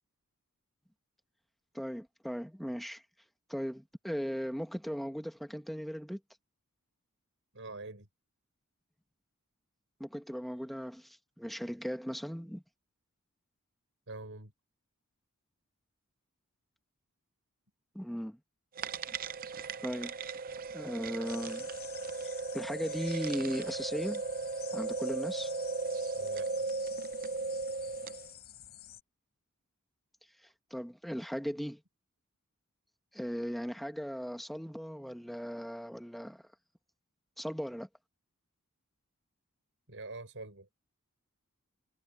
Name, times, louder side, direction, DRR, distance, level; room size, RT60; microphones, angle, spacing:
voice 1, 1.7-3.0 3.5-6.2 10.0-12.6 17.9-18.4 19.1-19.2 19.8-20.1 20.7-21.7 22.5-24.2 24.7-25.5 30.7-31.8 33.1-36.4 37.4-37.9, equal, ahead, 1.4 m, -37 dB
voice 2, 7.5-8.1 14.1-14.5 26.2-26.7 39.9-40.7, right 2 dB, 60° right, 6.2 m, -45 dB
sound 1, 18.8-28.3, right 4 dB, 40° right, 0.7 m, -37 dB
Town Swallows Hunting Insects, 21.2-29.0, left 11 dB, 45° left, 6.4 m, -50 dB
head